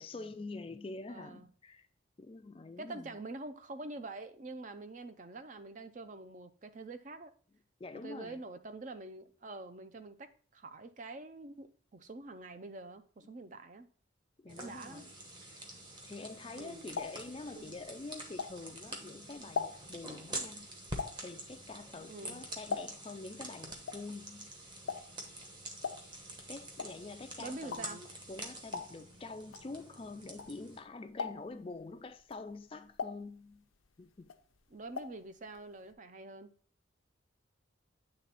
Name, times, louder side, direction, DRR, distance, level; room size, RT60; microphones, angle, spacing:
voice 1, 0.0-1.9 2.2-3.2 7.8-8.4 14.4-15.1 15.5-15.7 16.0-20.7 21.1-24.5 26.5-33.7 34.0-34.3, left 3 dB, 25° left, 0.3 m, -46 dB
voice 2, 1.1-1.5 2.8-7.3 7.9-13.9 14.5-15.1 16.6-16.9 17.5-17.7 22.1-22.4 27.4-28.0 34.7-36.5, right 2 dB, 40° right, 0.5 m, -46 dB
sound 1, 14.5-30.8, right 1 dB, 25° right, 1.0 m, -47 dB
sound 2, 16.4-18.9 19.3-23.2 23.5-30.8 31.1-31.7 32.2-33.9 34.2-35.3 35.5-35.6 35.9-36.0, left 5 dB, 85° left, 0.6 m, -42 dB
8.9 x 3.4 x 4.0 m
head